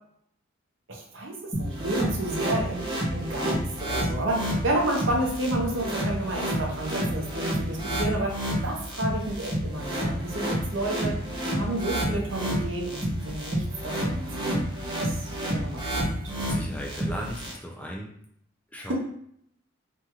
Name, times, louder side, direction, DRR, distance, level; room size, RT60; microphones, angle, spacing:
voice 1, 0.9-8.3 8.6-11.2 11.4-16.3 18.8-18.9, right 1 dB, 65° right, -1 dB, 0.7 m, -31 dB
sound 1, 1.5-17.5, equal, 20° right, 0.7 m, -29 dB
voice 2, 16.4-18.1 18.7-18.9, equal, 5° left, -1 dB, 0.3 m, -36 dB
2.9 x 2.7 x 2.3 m, 0.69 s
head